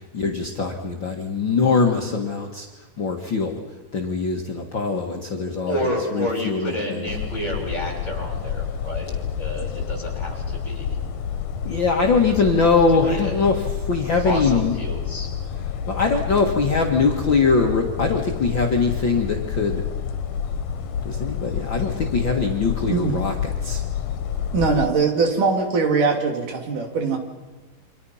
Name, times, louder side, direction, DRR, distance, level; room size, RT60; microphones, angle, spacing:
voice 1, 0.0-2.7 3.0-3.6 3.9-7.1 11.7-14.7 15.9-19.8 21.0-23.8, left 4 dB, 40° left, 1 dB, 2.1 m, -22 dB
voice 2, 5.7-11.0 12.3-12.7 13.0-13.4 14.2-15.3, equal, 20° left, 1 dB, 6.8 m, -30 dB
sound 1, 7.1-24.9, left 7 dB, 75° left, 2.6 m, -29 dB
voice 3, 24.5-27.2, right 4 dB, 75° right, 4 dB, 4.4 m, -21 dB
29.0 x 25.5 x 5.7 m, 1.2 s
omnidirectional pair, 3.7 m